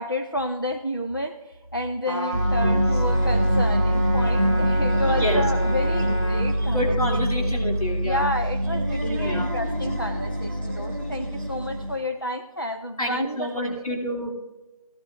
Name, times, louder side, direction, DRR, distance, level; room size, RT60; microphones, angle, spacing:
voice 1, 0.0-7.2 8.0-13.9, left 1 dB, 35° left, 4 dB, 0.5 m, -30 dB
Trumpet, 2.0-6.5, equal, 50° left, 3.7 m, -31 dB
sound 1, 2.3-12.0, equal, 45° right, 0.5 m, -24 dB
sound 2, 2.8-12.0, left 1 dB, 15° left, 1.8 m, -37 dB
voice 2, 5.1-5.4 6.6-8.2 9.0-9.5 13.0-14.3, left 1 dB, 70° left, 0 dB, 2.7 m, -28 dB
16.5 x 12.0 x 2.5 m, 1.1 s
figure-of-eight pair, 175°, 19 cm